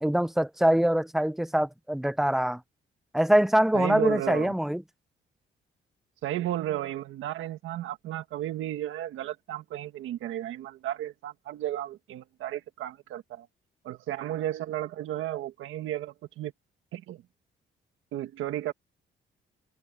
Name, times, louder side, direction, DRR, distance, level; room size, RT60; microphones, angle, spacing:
voice 1, 0.0-2.6 3.1-4.8, right 1 dB, ahead, 0.6 m, -24 dB
voice 2, 3.7-4.5 6.2-13.5 13.8-16.5 16.9-17.2 18.1-18.7, right 13 dB, 85° right, 1.6 m, -33 dB
cardioid pair, 90°, 20 cm